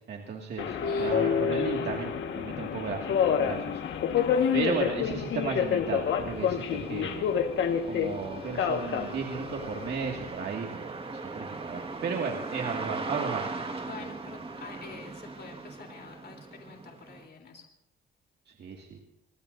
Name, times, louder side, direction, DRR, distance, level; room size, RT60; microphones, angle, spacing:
voice 1, 0.1-3.8 4.5-7.3 7.9-13.8 18.6-19.0, right 5 dB, 60° right, 1 dB, 2.2 m, -35 dB
Subway metro underground, 0.6-10.3, left 7 dB, 70° left, 1.7 m, -28 dB
voice 2, 0.8-1.3 4.2-4.7 13.8-17.6, left 5 dB, 55° left, 2 dB, 3.6 m, -46 dB
sound 1, 3.8-3.9 4.4-17.3, right 3 dB, 30° right, 1.8 m, -40 dB
26.5 x 20.0 x 2.7 m, 0.81 s
cardioid pair, 90°, 20 cm